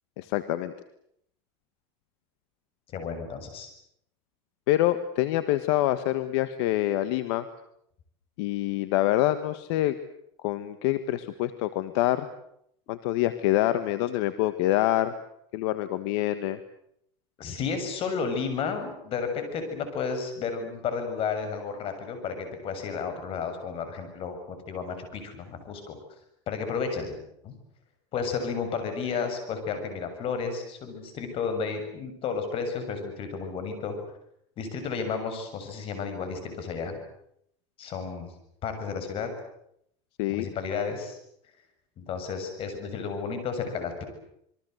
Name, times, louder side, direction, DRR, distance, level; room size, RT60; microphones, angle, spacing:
voice 1, 0.2-0.7 4.7-7.4 8.4-10.0 10.4-12.3 12.9-15.1 15.5-16.6 40.2-40.5, left 14 dB, 70° left, 11 dB, 1.5 m, -26 dB
voice 2, 2.9-3.7 17.4-26.0 26.5-27.2 27.4-27.5 28.1-34.0 34.6-37.0 37.8-38.3 38.6-39.3 40.3-41.2 42.0-44.0, left 5 dB, 40° left, 8 dB, 7.1 m, -32 dB
27.5 x 22.5 x 8.0 m, 0.73 s
supercardioid pair, 140°, 15 cm